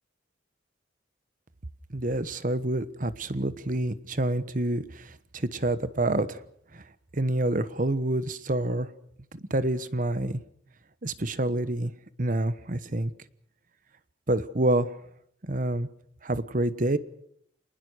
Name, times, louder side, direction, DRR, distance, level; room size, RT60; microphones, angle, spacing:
voice 1, 1.9-6.4 6.7-6.8 7.1-8.9 9.3-10.4 11.0-11.9 12.2-13.1 14.3-14.9 15.4-15.9 16.2-17.0, right 1 dB, 45° right, 14 dB, 1.1 m, -27 dB
27.0 x 20.0 x 6.4 m, 0.67 s
head